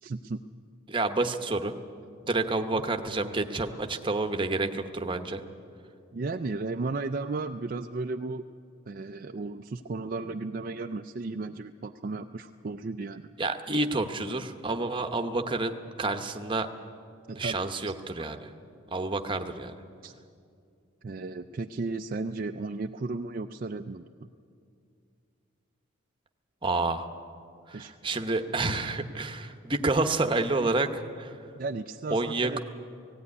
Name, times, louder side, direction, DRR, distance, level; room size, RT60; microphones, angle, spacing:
voice 1, 0.0-0.4 2.7-2.8 6.1-8.4 8.9-13.3 17.3-17.9 20.0-20.1 21.0-24.3 27.7-27.9 31.6-32.6, right 3 dB, 40° right, 6 dB, 0.4 m, -34 dB
voice 2, 0.9-1.7 2.2-5.4 13.4-16.7 17.4-18.5 18.9-19.7 26.6-27.1 27.7-31.3 32.1-32.6, right 2 dB, 25° right, 6 dB, 0.9 m, -29 dB
17.0 x 16.5 x 9.6 m, 2.4 s
head